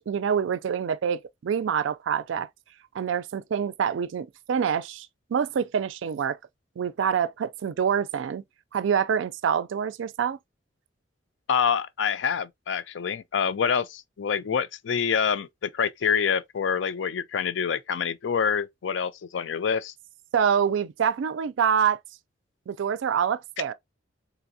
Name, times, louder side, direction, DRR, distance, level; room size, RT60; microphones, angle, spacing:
voice 1, 0.1-2.5 2.9-6.4 6.8-8.4 8.7-10.4 20.3-22.0 22.7-23.7, right 7 dB, 80° right, 0.4 m, -26 dB
voice 2, 11.5-19.9, left 7 dB, 75° left, 0.4 m, -26 dB
3.9 x 3.4 x 2.6 m
head